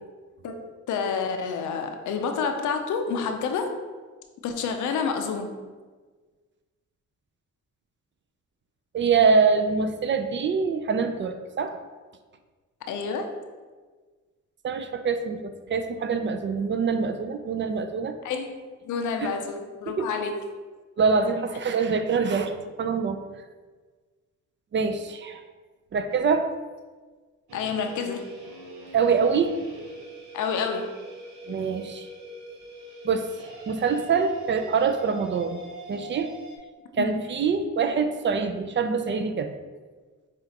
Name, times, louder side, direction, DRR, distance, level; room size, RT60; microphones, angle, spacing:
voice 1, 0.9-3.7 4.4-5.6 12.9-13.3 18.2-20.4 27.5-28.3 30.3-31.0 37.0-37.1, left 5 dB, 80° left, 5 dB, 0.5 m, -29 dB
voice 2, 8.9-11.8 14.6-18.1 19.2-19.3 20.0-20.1 21.0-22.5 22.8-23.2 24.7-25.4 25.9-26.5 28.9-29.5 31.5-32.1 33.0-33.3 33.7-35.6 35.9-36.3 36.9-39.5, right 5 dB, 40° right, 8 dB, 0.4 m, -24 dB
sound 1, 27.5-36.6, right 2 dB, 70° right, 0.9 m, -43 dB
5.7 x 2.4 x 2.8 m, 1.4 s
cardioid pair, 60°, 30 cm